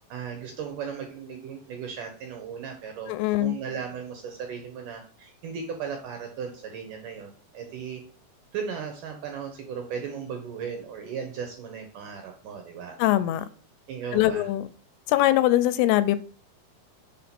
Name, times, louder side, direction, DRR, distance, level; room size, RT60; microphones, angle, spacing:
voice 1, 0.1-8.0 8.5-13.0 13.9-14.5, right 6 dB, 70° right, 4 dB, 2.1 m, -36 dB
voice 2, 3.1-3.5 13.0-13.5 14.1-14.6 15.1-16.2, left 14 dB, 85° left, 13 dB, 2.5 m, -22 dB
5.6 x 4.2 x 5.9 m, 0.40 s
omnidirectional pair, 4.7 m